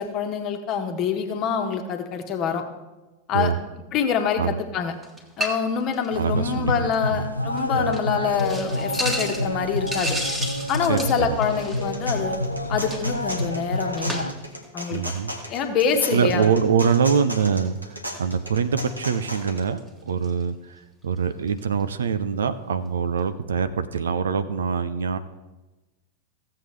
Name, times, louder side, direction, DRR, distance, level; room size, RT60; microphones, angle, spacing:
voice 1, 0.0-2.6 3.3-3.5 3.9-4.9 5.4-10.2 10.7-12.4 12.7-14.3 14.7-15.1 15.5-16.5, left 7 dB, 35° left, 5 dB, 1.3 m, -25 dB
sound 1, 5.0-5.7 5.9-6.2 6.5-6.6 6.9-7.0 7.6-7.7 7.9-8.0 8.4-12.1 12.9-14.5 15.0-15.2 15.8-16.1 17.5-17.8 18.3-18.4 19.1-19.2 19.4-20.4 21.2-21.3 21.5-21.6, equal, 10° right, 1.4 m, -33 dB
sound 2, 6.1-14.3, left 1 dB, 85° left, 0.5 m, -28 dB
voice 2, 6.2-7.2 7.7-8.0 10.9-11.4 14.9-15.3 16.1-25.2, right 6 dB, 65° right, 11 dB, 0.5 m, -24 dB
sound 3, 11.6-19.6, equal, 90° right, 1.4 m, -36 dB
15.5 x 7.6 x 3.3 m, 1.1 s
figure-of-eight pair, 90°, 0 cm